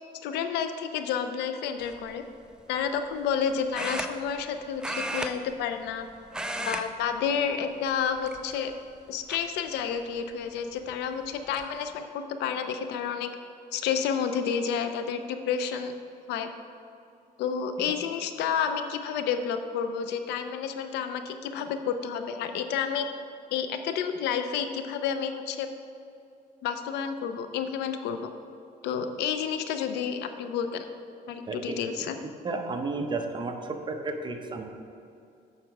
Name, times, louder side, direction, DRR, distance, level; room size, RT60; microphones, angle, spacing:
voice 1, 0.2-2.2 2.7-6.1 6.6-8.7 9.1-13.3 13.7-15.9 16.3-16.5 17.4-23.1 23.5-25.7 26.6-28.3 28.8-30.8 31.3-32.2, left 7 dB, 85° left, 8 dB, 0.6 m, -30 dB
sound 1, 1.8-2.1 3.7-4.5 4.8-6.0 6.3-6.9 7.2-7.4 8.2-8.7 9.3-9.4 10.8-10.9 11.3-11.6, right 1 dB, 5° right, 0.5 m, -34 dB
voice 2, 31.5-31.8 32.4-34.6, right 3 dB, 25° right, 4 dB, 0.9 m, -32 dB
8.7 x 6.0 x 4.7 m, 2.6 s
cardioid pair, 110°, 17 cm